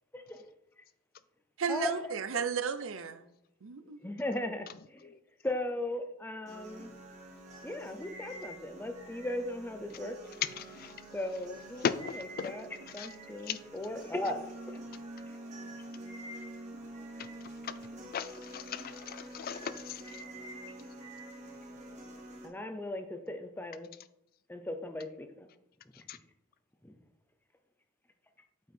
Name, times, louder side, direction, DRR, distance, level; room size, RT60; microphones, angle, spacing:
voice 1, 0.1-0.5 1.7-1.9 4.0-5.1 5.4-6.9 7.6-10.1 11.1-14.8 22.4-23.9 24.5-25.5 26.1-26.2 26.8-26.9, left 1 dB, 10° left, 0.6 m, -37 dB
voice 2, 1.6-3.3 3.6-4.0, right 6 dB, 65° right, 0.6 m, -34 dB
sound 1, 6.5-22.5, right 1 dB, 35° right, 1.6 m, -47 dB
voice 3, 11.8-12.5 13.0-13.1 13.5-13.6 18.1-18.3 18.5-20.0 26.1-26.2, left 7 dB, 45° left, 0.3 m, -35 dB
8.3 x 4.6 x 4.4 m
head